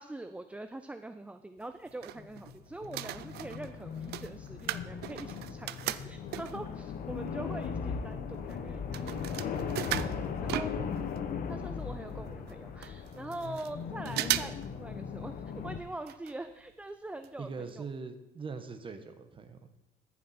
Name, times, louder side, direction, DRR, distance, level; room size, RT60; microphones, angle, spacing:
voice 1, 0.0-10.1 10.4-10.8 11.5-17.9, right 2 dB, 5° right, 9 dB, 0.4 m, -44 dB
sound 1, 1.6-2.6 2.8-6.7 7.3-7.4 7.6-11.2 11.5-11.6 11.8-11.9 12.5-12.6 12.8-13.7 14.1-14.7 15.0-15.1 16.0-16.3 16.7-16.8 17.2-17.3 17.7-17.8, right 14 dB, 70° right, 0.5 m, -37 dB
sound 2, 2.2-15.8, left 6 dB, 60° left, 1.1 m, -38 dB
voice 2, 17.4-19.7, right 4 dB, 30° right, 7 dB, 1.3 m, -41 dB
14.0 x 7.3 x 4.3 m, 0.92 s
cardioid pair, 110°, 17 cm